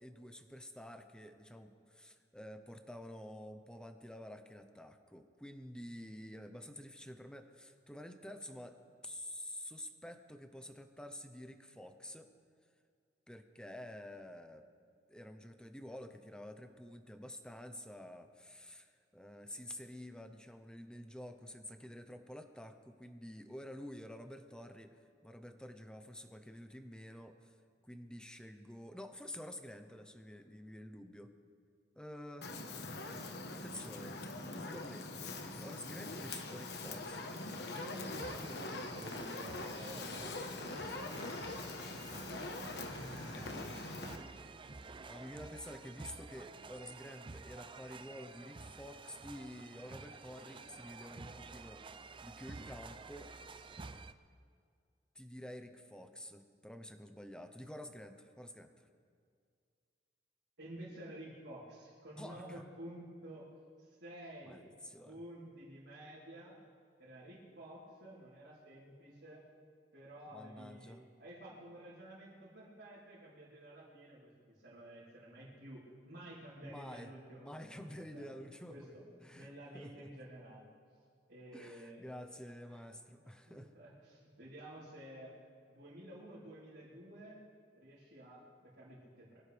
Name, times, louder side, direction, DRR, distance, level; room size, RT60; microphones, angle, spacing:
voice 1, 0.0-8.8 9.0-12.3 13.3-14.7 15.1-27.6 27.8-31.3 31.9-32.6 33.5-35.3 35.6-37.3 41.9-42.6 43.0-44.3 45.1-51.8 52.2-53.3 55.1-58.9 62.2-62.6 64.4-65.2 70.3-71.1 76.6-80.1 81.5-83.7, left 1 dB, 5° left, 7 dB, 0.9 m, -50 dB
Fire, 32.4-44.2, left 2 dB, 65° left, 1.3 m, -43 dB
voice 2, 37.7-41.0 60.6-63.5 63.8-64.6 65.0-66.6 67.0-69.4 69.9-77.8 78.1-78.3 78.7-79.0 79.3-80.7 81.3-82.0 82.7-82.8 83.2-85.3 85.7-87.4 87.8-89.4, right 1 dB, 90° right, -10 dB, 3.8 m, -51 dB
sound 1, 38.1-54.1, right 3 dB, 30° right, 0.5 m, -51 dB
23.5 x 16.5 x 3.5 m, 2.2 s
head